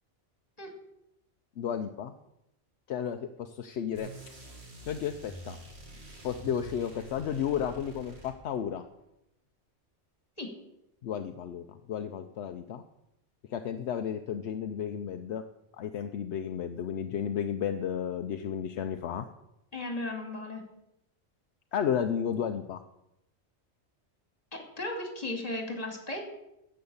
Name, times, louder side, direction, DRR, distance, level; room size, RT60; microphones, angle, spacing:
voice 1, 1.6-2.1 2.9-4.1 4.9-5.6 6.2-8.8 11.0-12.8 13.5-15.4 15.8-19.3 21.7-22.8, left 8 dB, 75° left, 7 dB, 0.9 m, -33 dB
sound 1, 3.9-8.8, right 2 dB, 65° right, 2.3 m, -47 dB
voice 2, 19.7-20.6 24.5-26.2, left 2 dB, 35° left, 3 dB, 2.6 m, -36 dB
10.5 x 7.9 x 7.1 m, 0.85 s
omnidirectional pair, 1.2 m